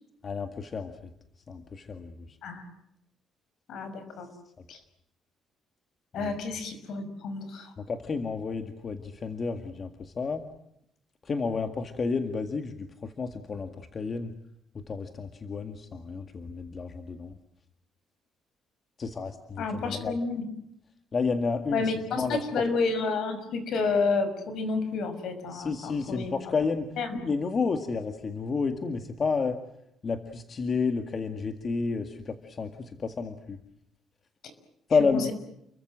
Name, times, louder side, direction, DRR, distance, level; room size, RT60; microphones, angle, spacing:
voice 1, 0.2-1.0 1.5-2.4 6.2-6.4 7.8-10.5 11.2-14.3 14.9-17.4 19.0-20.2 21.1-22.4 25.5-29.6 30.0-33.6 34.9-35.3, left 4 dB, 30° left, 7 dB, 2.0 m, -31 dB
voice 2, 3.7-4.3 4.7-4.8 6.1-7.7 19.6-20.5 21.7-26.5 27.0-27.2 35.1-35.3, left 4 dB, 60° left, 10 dB, 5.9 m, -30 dB
30.0 x 23.0 x 7.5 m, 0.77 s
cardioid pair, 150°, 0 cm